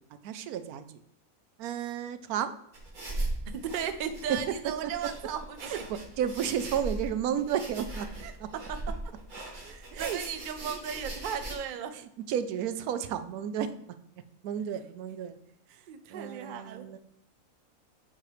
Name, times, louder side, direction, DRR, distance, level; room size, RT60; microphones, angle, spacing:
voice 1, 0.2-1.0 1.6-2.5 4.3-4.4 5.7-8.1 8.4-8.5 9.9-10.2 12.3-13.8 14.4-15.4 16.1-17.0, right 9 dB, 85° right, 12 dB, 1.1 m, -32 dB
sound 1, 2.7-11.6, right 2 dB, 35° right, 1.3 m, -39 dB
voice 2, 3.5-5.8 8.2-8.8 9.6-11.9 15.9-16.9, right 8 dB, 60° right, 8 dB, 0.5 m, -36 dB
7.8 x 3.1 x 4.7 m, 0.76 s
omnidirectional pair, 1.5 m